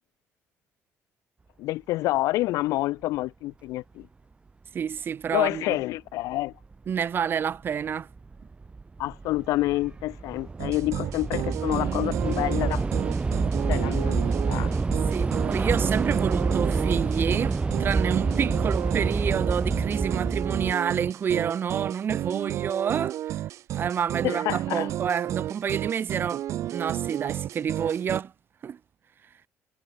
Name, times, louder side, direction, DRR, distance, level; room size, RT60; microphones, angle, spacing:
voice 1, 1.6-4.1 5.3-6.5 9.0-12.9 13.6-15.0 24.2-24.9, left 18 dB, 85° left, 1.3 m, -28 dB
voice 2, 4.7-5.8 6.9-8.1 15.1-23.2 23.7-28.3 28.6-28.8, right 8 dB, 40° right, 1.2 m, -29 dB
Train / Subway metro underground, 6.7-6.8 7.6-7.9 8.2-20.7, right 4 dB, 20° right, 1.0 m, -27 dB
sound 1, 10.6-28.2, right 12 dB, 65° right, 3.2 m, -32 dB
cardioid pair, 125°, 6 cm